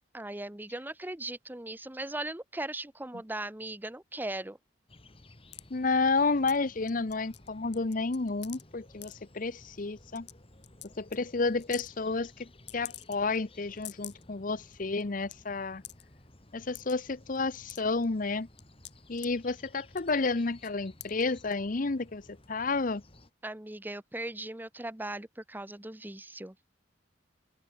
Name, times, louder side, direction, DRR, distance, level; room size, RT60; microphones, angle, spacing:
voice 1, 0.1-4.6 23.4-26.6, right 1 dB, 10° right, 0.9 m, -38 dB
sound 1, 4.9-23.3, left 1 dB, 30° left, 3.4 m, -56 dB
sound 2, 5.5-5.6 6.5-6.6 6.9-7.5 7.7-8.6 9.0-9.1 9.8-9.9 10.2-10.3 10.6-10.9 11.1-11.2 11.6-11.9 12.7-13.4 13.7-14.2 14.7-14.8 15.0-15.3 15.8-16.0 16.7-16.9 17.4-18.0 18.6-19.3 19.9-20.2 20.6-20.7 21.0-21.2 21.5-21.6, left 15 dB, 60° left, 4.4 m, -45 dB
voice 2, 5.7-10.3 11.0-12.5 12.7-15.8 16.5-18.5 19.1-23.0, left 3 dB, 45° left, 0.8 m, -31 dB
open air
head